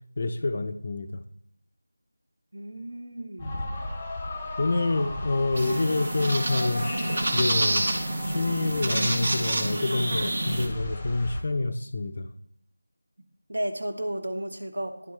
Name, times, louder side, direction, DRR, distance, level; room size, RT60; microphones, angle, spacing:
voice 1, 0.2-1.2 4.6-7.9 8.3-12.3, left 2 dB, 35° left, 9 dB, 0.4 m, -27 dB
voice 2, 2.5-3.6 13.5-15.1, right 1 dB, 65° right, 6 dB, 1.1 m, -33 dB
sound 1, 3.4-11.4, left 2 dB, 10° left, 0.8 m, -37 dB
sound 2, 5.5-10.7, right 1 dB, 35° right, 0.9 m, -27 dB
10.5 x 4.5 x 3.2 m, 0.72 s
figure-of-eight pair, 175°, 0 cm